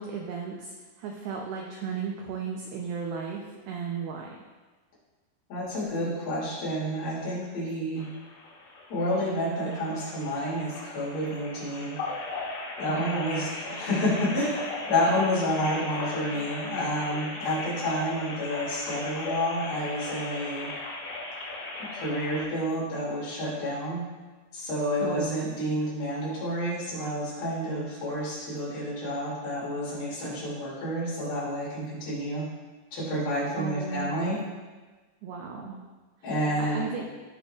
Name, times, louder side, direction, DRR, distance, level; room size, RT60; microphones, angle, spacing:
voice 1, 0.0-4.4 12.9-13.6 25.0-25.4 33.6-34.2 35.2-35.8 36.3-37.1, right 5 dB, 90° right, 0 dB, 2.3 m, -35 dB
voice 2, 5.5-8.1 8.9-12.0 12.8-20.7 21.8-24.0 24.5-32.4 32.9-34.4 36.2-36.8, equal, 55° left, -7 dB, 4.1 m, -29 dB
sound 1, 8.0-22.4, left 2 dB, 80° left, 4.6 m, -37 dB
16.5 x 6.4 x 2.4 m, 1.3 s
omnidirectional pair, 5.6 m